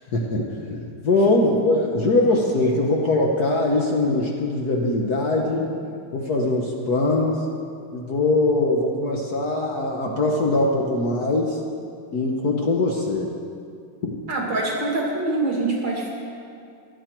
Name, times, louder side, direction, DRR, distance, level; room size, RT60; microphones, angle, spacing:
voice 1, 0.1-5.8 6.1-7.5 7.9-11.6 12.1-13.3 14.0-14.2, left 2 dB, 55° left, 0 dB, 1.4 m, -22 dB
voice 2, 14.3-16.1, right 2 dB, 55° right, -2 dB, 2.9 m, -24 dB
16.0 x 11.5 x 4.5 m, 2.4 s
omnidirectional pair, 2.4 m